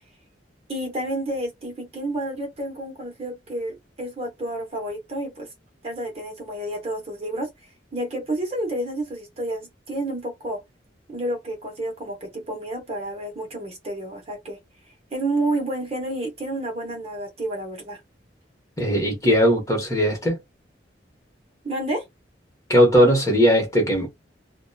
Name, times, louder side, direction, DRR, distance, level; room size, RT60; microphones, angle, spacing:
voice 1, 0.7-5.5 5.8-7.5 7.9-10.6 11.1-14.6 15.1-18.0 21.6-22.0, right 1 dB, 35° right, 0.9 m, -30 dB
voice 2, 18.8-20.4 22.7-24.1, equal, 20° left, 1.0 m, -18 dB
2.7 x 2.2 x 2.2 m
head